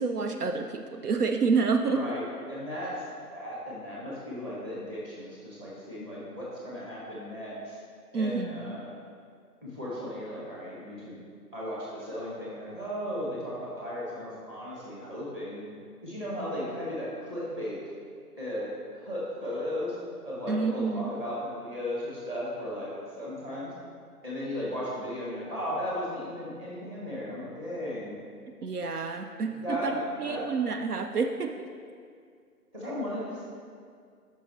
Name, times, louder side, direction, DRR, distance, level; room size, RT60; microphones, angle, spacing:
voice 1, 0.0-2.0 8.1-8.8 20.5-21.1 28.6-29.9 30.2-31.7, right 4 dB, 70° right, 6 dB, 0.6 m, -28 dB
voice 2, 1.9-3.1 3.3-7.8 8.1-8.9 9.6-11.2 11.5-15.7 16.0-17.8 18.4-19.9 20.2-22.9 23.2-23.7 24.2-28.1 29.5-30.4 32.7-33.4, left 1 dB, 15° right, -7 dB, 1.3 m, -35 dB
10.5 x 5.7 x 3.1 m, 2.2 s
figure-of-eight pair, 150°, 47 cm